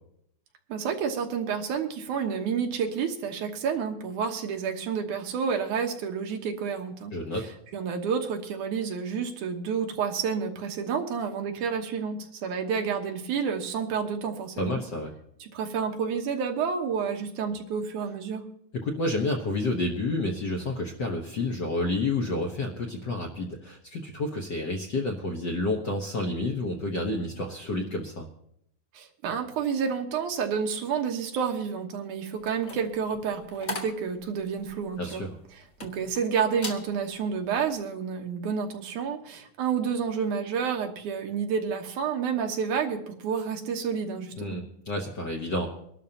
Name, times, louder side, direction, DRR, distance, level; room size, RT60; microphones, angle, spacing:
voice 1, 0.7-7.5 7.7-14.8 15.4-18.4 28.9-35.2 35.5-44.6, right 6 dB, 85° right, 3 dB, 2.7 m, -30 dB
voice 2, 7.1-7.5 14.6-15.1 18.7-28.2 35.0-35.4 44.3-45.7, left 2 dB, 60° left, 1 dB, 1.2 m, -30 dB
sound 1, 32.4-36.2 36.5-36.9 37.3-37.6, left 1 dB, 35° left, 1.6 m, -39 dB
23.5 x 12.0 x 2.9 m, 0.72 s
omnidirectional pair, 3.4 m